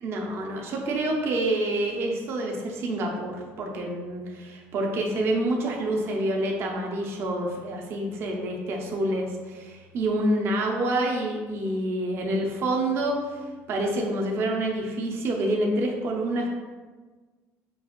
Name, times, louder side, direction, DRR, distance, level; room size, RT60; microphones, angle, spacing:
voice 1, 0.0-13.2 13.7-16.5, right 1 dB, 45° right, 0 dB, 0.6 m, -27 dB
5.2 x 2.4 x 3.0 m, 1.4 s
cardioid pair, 165°, 6 cm